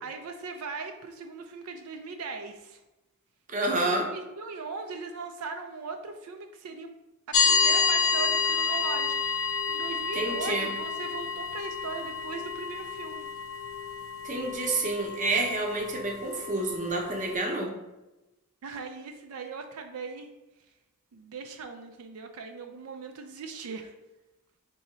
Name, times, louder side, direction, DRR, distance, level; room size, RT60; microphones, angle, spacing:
voice 1, 0.0-2.8 3.8-6.9 7.3-13.3 18.6-20.3 21.1-23.9, right 4 dB, 85° right, 5 dB, 0.4 m, -39 dB
voice 2, 3.5-4.1 10.2-10.7 14.2-17.7, right 2 dB, 35° right, 0 dB, 0.7 m, -29 dB
sound 1, 7.3-17.3, left 5 dB, 65° left, 0.4 m, -29 dB
3.8 x 2.8 x 4.2 m, 1.0 s
head